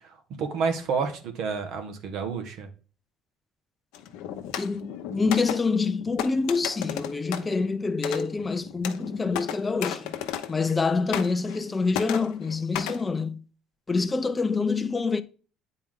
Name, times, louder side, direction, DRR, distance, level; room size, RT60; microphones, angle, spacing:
voice 1, 0.0-2.7, right 5 dB, 70° right, 1.4 m, -30 dB
sound 1, 3.9-10.8 11.1-11.7 11.9-13.0, left 10 dB, 85° left, 0.8 m, -35 dB
voice 2, 4.6-10.1 10.5-13.4 13.9-15.2, left 4 dB, 20° left, 0.6 m, -26 dB
9.0 x 4.3 x 3.7 m
cardioid pair, 100°, 0 cm